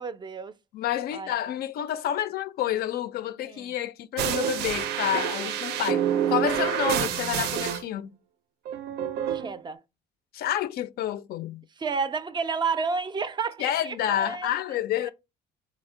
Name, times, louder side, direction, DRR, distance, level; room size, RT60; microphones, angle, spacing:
voice 1, 0.0-0.5 1.1-1.3 3.4-3.7 9.3-9.8 11.8-14.5 15.0-15.1, right 5 dB, 25° right, 0.4 m, -31 dB
voice 2, 0.7-8.1 10.3-11.6 13.6-15.1, left 11 dB, 65° left, 0.4 m, -29 dB
sound 1, 4.2-7.8 8.7-9.5, right 10 dB, 90° right, 0.5 m, -27 dB
4.3 x 2.0 x 3.7 m
cardioid pair, 110°, 17 cm